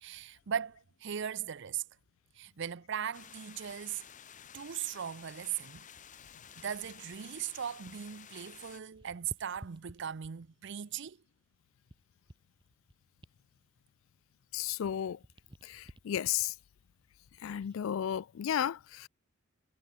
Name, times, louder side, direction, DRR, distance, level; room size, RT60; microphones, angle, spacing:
voice 1, 0.0-1.8 2.4-4.0 4.5-5.9 6.6-11.2, right 8 dB, 60° right, 0.6 m, -38 dB
sound 1, 3.1-8.8, left 8 dB, 40° left, 1.1 m, -53 dB
sound 2, 5.4-8.2 8.5-10.6 11.1-14.7 15.0-17.8 18.3-18.5, equal, 25° right, 2.9 m, -56 dB
voice 2, 14.5-15.2 15.6-16.6 17.4-19.1, left 10 dB, 75° left, 0.4 m, -33 dB
head